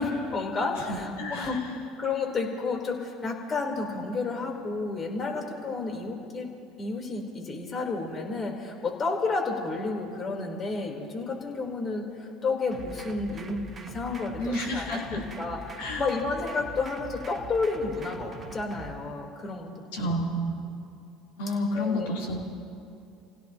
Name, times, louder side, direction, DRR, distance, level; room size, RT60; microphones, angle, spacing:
voice 1, 0.0-1.6 2.0-6.5 6.8-19.7 19.9-20.3 21.7-22.1, left 3 dB, 35° left, 0 dB, 3.7 m, -31 dB
voice 2, 0.8-1.8 14.4-15.2 15.8-16.1 19.9-20.6 21.4-22.5, left 1 dB, 75° left, -3 dB, 3.4 m, -30 dB
sound 1, 12.7-18.9, right 2 dB, 30° right, 1.7 m, -43 dB
29.5 x 16.5 x 2.9 m, 2.5 s
hypercardioid pair, 75°, 0 cm